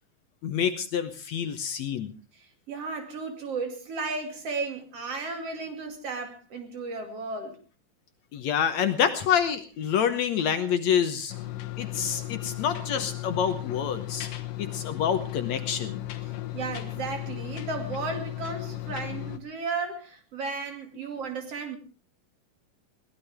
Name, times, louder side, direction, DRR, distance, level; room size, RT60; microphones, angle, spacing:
voice 1, 0.4-2.1 8.3-11.3 11.8-14.3 14.6-16.0, left 8 dB, 65° left, 2.1 m, -27 dB
voice 2, 2.3-7.6 16.5-21.8, right 4 dB, 50° right, 3.3 m, -34 dB
sound 1, 11.3-19.4, left 15 dB, 85° left, 2.9 m, -35 dB
22.0 x 17.0 x 3.5 m
omnidirectional pair, 3.8 m